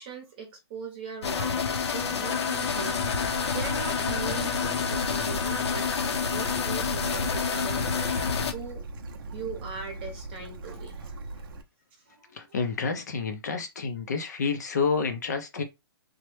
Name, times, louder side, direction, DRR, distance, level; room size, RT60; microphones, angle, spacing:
voice 1, 0.0-8.2 8.5-8.8 9.3-11.5 12.1-12.5, right 5 dB, 20° right, 0.8 m, -40 dB
sound 1, 1.2-8.5, left 6 dB, 85° left, 0.6 m, -28 dB
sound 2, 2.2-8.3, left 3 dB, 20° left, 0.8 m, -39 dB
Bird / Stream, 2.7-11.6, right 2 dB, 55° right, 0.5 m, -40 dB
voice 2, 12.3-15.6, left 5 dB, 40° left, 0.4 m, -29 dB
3.0 x 2.1 x 3.1 m
hypercardioid pair, 175°, 14 cm